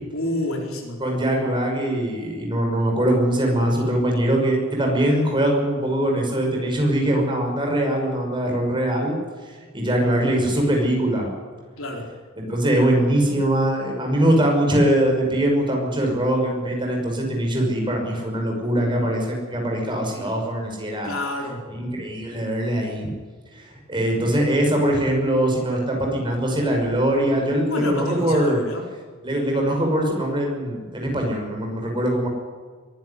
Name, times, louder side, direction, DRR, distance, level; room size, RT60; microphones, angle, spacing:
voice 1, 0.1-1.0 11.8-12.1 21.0-21.6 27.7-28.8, left 1 dB, 70° left, 1 dB, 4.4 m, -28 dB
voice 2, 1.0-9.2 9.7-11.3 12.4-21.1 21.7-23.1 23.5-28.6 29.2-32.3, right 1 dB, 25° right, 1 dB, 5.9 m, -22 dB
23.0 x 11.5 x 9.9 m, 1.5 s
head